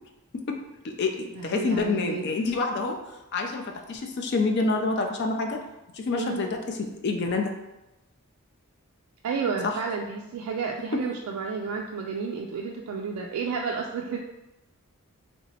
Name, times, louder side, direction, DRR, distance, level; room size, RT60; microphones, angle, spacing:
voice 1, 0.5-3.0 3.3-5.6 5.9-7.5 9.6-9.7 10.9-11.1, left 3 dB, 50° left, 3 dB, 0.4 m, -27 dB
voice 2, 1.4-2.3 6.2-6.5 9.2-14.2, right 5 dB, 85° right, 0 dB, 0.3 m, -31 dB
3.3 x 2.9 x 2.8 m, 0.94 s
head